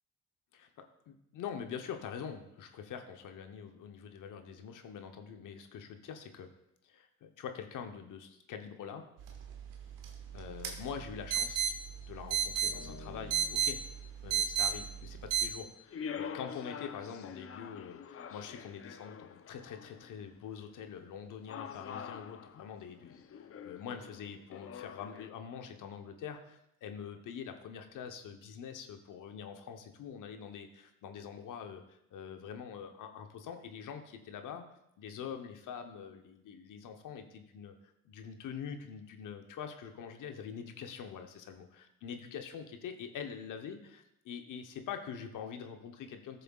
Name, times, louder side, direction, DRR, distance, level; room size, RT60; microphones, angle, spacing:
voice 1, 0.5-6.5 6.8-9.1 10.3-11.7 12.1-13.8 14.2-34.6 35.0-46.4, left 7 dB, 70° left, 6 dB, 0.9 m, -45 dB
sound 1, 9.2-15.5, right 8 dB, 90° right, 1.1 m, -35 dB
sound 2, 12.6-14.0 15.9-20.2 21.5-25.3, left 7 dB, 45° left, 0.6 m, -46 dB
13.5 x 6.7 x 2.4 m, 0.81 s
supercardioid pair, 50°, 32 cm